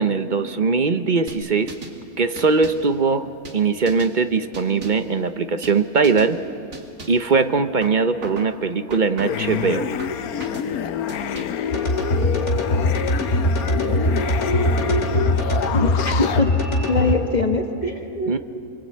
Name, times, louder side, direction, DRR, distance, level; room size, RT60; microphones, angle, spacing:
voice 1, 0.0-1.7 2.2-6.4 7.1-9.9 18.3-18.4, right 4 dB, 40° right, 10 dB, 0.9 m, -20 dB
sound 1, 1.3-2.0 2.4-2.9 3.5-4.2 4.5-5.1 5.6-5.8 6.0-6.3 6.7-7.3 7.8-8.5 8.9-9.5 10.0-10.7 11.1-11.7, right 3 dB, 65° right, 2.7 m, -38 dB
sound 2, 9.2-16.4, left 7 dB, 90° left, 1.3 m, -27 dB
sound 3, 11.7-17.1, left 1 dB, 55° left, 2.7 m, -21 dB
voice 2, 15.7-16.5 16.9-18.3, left 3 dB, 30° left, 4 dB, 1.6 m, -23 dB
27.0 x 24.5 x 8.6 m, 2.6 s
omnidirectional pair, 1.5 m